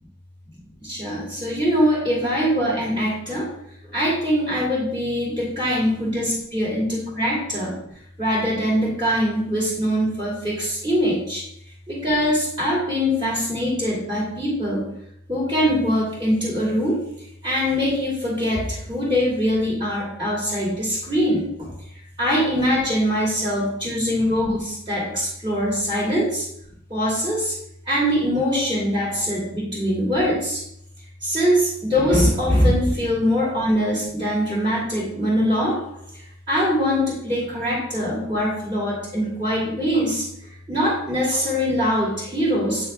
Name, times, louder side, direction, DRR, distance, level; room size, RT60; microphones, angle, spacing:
voice 1, 0.8-3.5 3.8-7.7 8.2-11.4 11.9-14.9 15.3-17.0 17.4-21.7 22.2-26.4 26.9-27.5 27.9-30.6 31.2-35.8 36.5-40.2 40.7-42.9, equal, 25° right, -6 dB, 2.6 m, -22 dB
7.8 x 6.3 x 3.5 m, 0.72 s
head